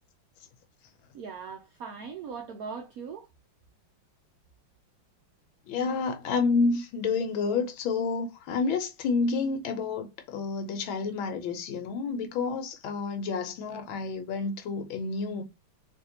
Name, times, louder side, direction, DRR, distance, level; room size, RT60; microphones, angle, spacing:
voice 1, 1.1-3.3, right 6 dB, 90° right, 0.8 m, -39 dB
voice 2, 5.7-15.4, left 4 dB, 80° left, 1.5 m, -29 dB
3.5 x 3.2 x 2.7 m
omnidirectional pair, 2.2 m